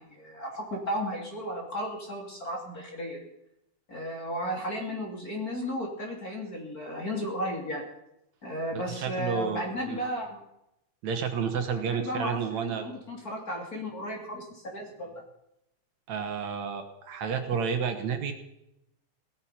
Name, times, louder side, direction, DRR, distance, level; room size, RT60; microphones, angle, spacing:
voice 1, 0.0-3.3 3.9-7.8 8.4-10.4 11.7-15.2, equal, 30° left, 1 dB, 3.5 m, -34 dB
voice 2, 8.7-10.0 11.0-12.9 16.1-18.3, right 6 dB, 70° right, 6 dB, 2.7 m, -31 dB
18.0 x 13.0 x 5.9 m, 0.82 s
omnidirectional pair, 3.3 m